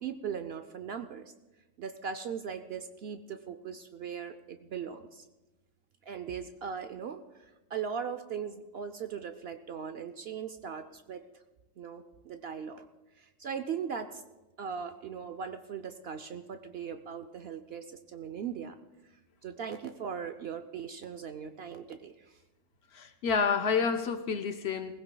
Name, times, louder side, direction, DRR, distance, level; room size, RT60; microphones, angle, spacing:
voice 1, 0.0-1.3 1.8-5.3 6.0-11.2 11.8-12.9 13.2-14.2 14.6-18.8 19.4-22.4, right 7 dB, 60° right, 0.7 m, -39 dB
voice 2, 23.0-25.0, left 6 dB, 60° left, 0.8 m, -29 dB
19.5 x 15.5 x 2.2 m
omnidirectional pair, 1.4 m